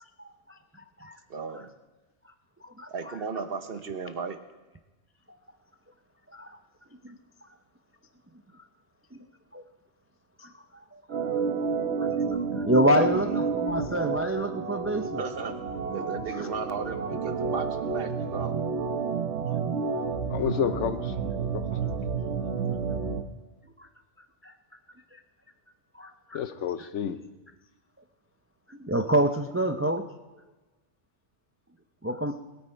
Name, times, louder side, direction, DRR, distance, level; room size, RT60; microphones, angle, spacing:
voice 1, 1.3-1.7 2.9-4.4 13.0-13.2 15.0-15.6 15.9-18.7, right 5 dB, 55° right, 9 dB, 1.1 m, -35 dB
Organ, 11.1-23.3, right 5 dB, 75° right, 1.2 m, -30 dB
voice 2, 12.5-15.0 16.3-16.4 24.4-24.5 26.0-26.1 28.7-30.0 32.0-32.4, right 1 dB, 20° right, 7 dB, 0.3 m, -26 dB
voice 3, 20.3-21.2 21.5-22.1 26.3-27.2, left 8 dB, 85° left, 11 dB, 1.1 m, -31 dB
20.5 x 8.9 x 4.5 m, 1.2 s
omnidirectional pair, 1.2 m